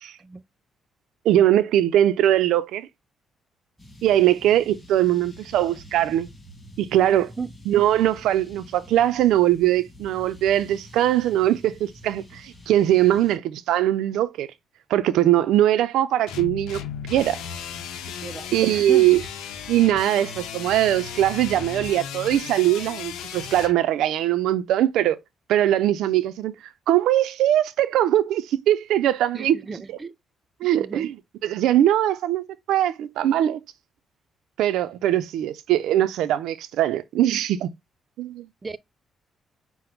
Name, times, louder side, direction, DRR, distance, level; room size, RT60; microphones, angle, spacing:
voice 1, 1.2-2.9 4.0-6.3 6.8-7.3 7.7-14.5 14.9-16.8 17.1-17.4 18.5-19.2 19.7-25.2 25.5-26.5 26.9-29.6 30.6-31.1 31.4-33.6 34.6-37.7 38.2-38.5, right 12 dB, 85° right, 0.4 m, -21 dB
sound 1, 3.8-13.4, left 1 dB, 10° left, 1.9 m, -47 dB
voice 2, 7.1-7.5 18.2-19.1 29.3-30.1 30.7-31.1 38.6-38.8, right 4 dB, 30° right, 0.5 m, -35 dB
sound 2, 16.3-23.7, left 7 dB, 90° left, 0.7 m, -35 dB
5.9 x 2.0 x 3.7 m
cardioid pair, 90°, 0 cm